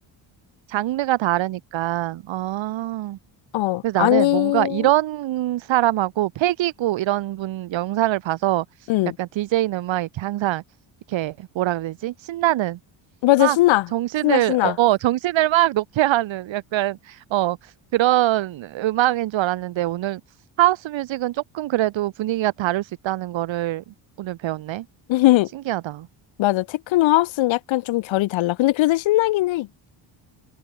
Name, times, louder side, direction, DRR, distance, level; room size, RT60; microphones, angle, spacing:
voice 1, 0.7-3.2 3.8-8.9 9.2-10.6 11.1-12.8 13.4-13.6 13.9-20.2 20.6-23.8 24.2-24.8 25.7-26.1, right 15 dB, 70° right, 2.1 m, -23 dB
voice 2, 3.5-4.9 8.9-9.2 13.2-13.9 14.2-14.8 25.1-25.5 26.4-29.7, left 17 dB, 70° left, 1.0 m, -19 dB
cardioid pair, 120°, 47 cm